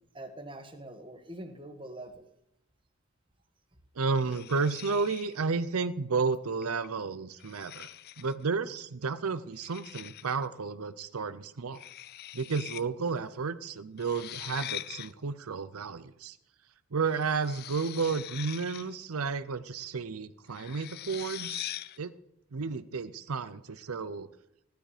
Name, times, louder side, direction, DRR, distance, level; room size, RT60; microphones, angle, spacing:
voice 1, 0.1-2.3, right 1 dB, 25° right, 6 dB, 1.6 m, -44 dB
voice 2, 3.9-7.9 8.2-11.8 12.3-16.4 16.9-21.7 22.0-22.1 22.5-24.3, right 4 dB, 90° right, 13 dB, 0.7 m, -32 dB
sound 1, 4.1-5.4 6.6-6.9 7.4-8.4 9.6-10.5 11.7-12.8 13.1-13.2 14.0-15.1 17.0-19.0 20.5-22.0, left 13 dB, 45° left, 0.4 m, -42 dB
15.5 x 11.5 x 5.0 m, 0.83 s
head